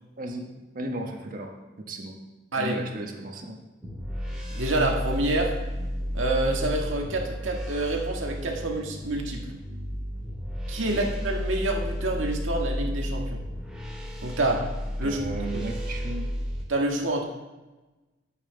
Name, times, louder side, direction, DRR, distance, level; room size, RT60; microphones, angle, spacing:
voice 1, 0.2-2.2 2.6-3.6 10.9-11.1 15.0-16.3, right 1 dB, 45° right, 2 dB, 1.2 m, -35 dB
sound 1, 3.8-16.6, equal, ahead, 2.2 m, -32 dB
voice 2, 4.5-5.5 6.1-9.4 10.7-13.4 14.2-14.6 15.0-15.2 15.5-15.6 16.7-17.2, right 2 dB, 85° right, 1 dB, 1.6 m, -27 dB
11.5 x 8.8 x 3.9 m, 1.2 s
head